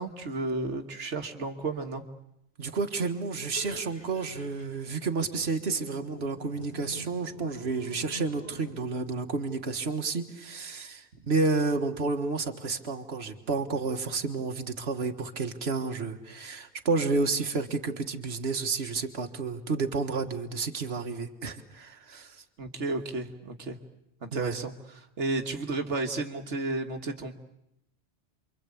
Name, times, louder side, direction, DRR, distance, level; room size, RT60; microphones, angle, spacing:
voice 1, 0.0-2.0 22.6-23.8 24.2-27.3, right 3 dB, 90° right, 5 dB, 1.9 m, -32 dB
voice 2, 2.6-22.4 24.3-24.6, right 4 dB, 65° right, 5 dB, 1.9 m, -31 dB
sound 1, 3.4-8.7, left 1 dB, 75° left, 3.9 m, -46 dB
28.5 x 24.5 x 8.5 m, 0.80 s
omnidirectional pair, 1.2 m